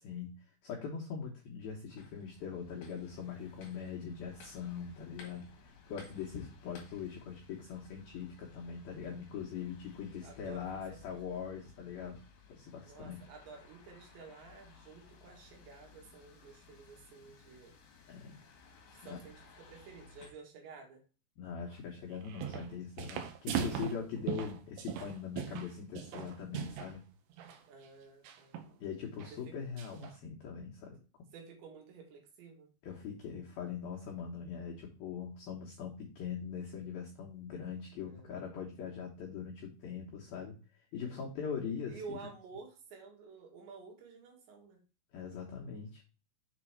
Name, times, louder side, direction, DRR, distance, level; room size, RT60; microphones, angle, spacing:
voice 1, 0.0-0.4 0.6-12.2 12.5-13.3 18.1-18.4 19.1-19.2 21.4-27.0 28.8-31.0 32.8-42.2 45.1-46.0, left 7 dB, 90° left, -1 dB, 2.1 m, -42 dB
sound 1, 2.0-20.3, left 5 dB, 60° left, 3.0 m, -58 dB
voice 2, 10.2-11.1 12.8-17.7 18.9-21.0 27.7-28.6 29.3-29.6 31.3-32.7 38.1-38.4 41.9-44.8, right 4 dB, 65° right, 1 dB, 3.6 m, -51 dB
sound 2, 22.1-22.7 23.0-26.9 27.3-27.6 28.2-28.7 29.2-29.3 29.8-30.1, right 9 dB, 85° right, 2.3 m, -39 dB
7.4 x 4.1 x 4.5 m, 0.35 s
omnidirectional pair, 5.9 m